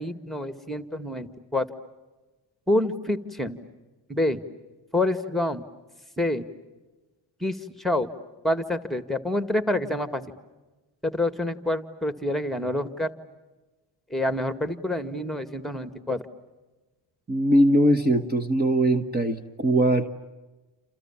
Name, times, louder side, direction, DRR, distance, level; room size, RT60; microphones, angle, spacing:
voice 1, 0.0-1.7 2.7-3.6 4.1-4.4 4.9-5.6 6.2-6.5 7.4-8.1 8.4-10.2 11.0-13.1 14.1-16.2, left 1 dB, ahead, 10 dB, 1.9 m, -27 dB
voice 2, 17.3-20.1, right 1 dB, 20° right, 6 dB, 1.4 m, -21 dB
29.0 x 28.0 x 7.3 m, 1.2 s
cardioid pair, 90°, 45 cm